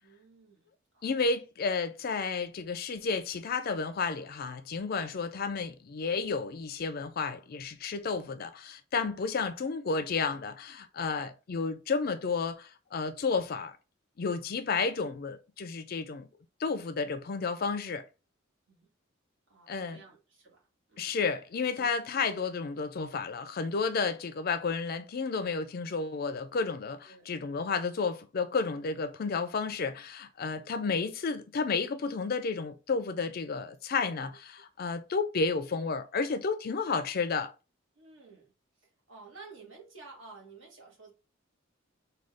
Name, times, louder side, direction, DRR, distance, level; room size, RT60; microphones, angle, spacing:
voice 1, 0.0-1.1 9.1-9.3 18.7-18.9 19.5-21.2 21.8-21.9 23.9-24.1 27.0-27.3 30.5-30.8 38.0-38.5 38.8-41.1, right 4 dB, 65° right, 1.3 m, -53 dB
voice 2, 1.0-13.8 14.2-16.3 16.6-18.0 19.7-20.0 21.0-37.5, left 4 dB, 50° left, 0.4 m, -32 dB
3.7 x 2.3 x 3.4 m
head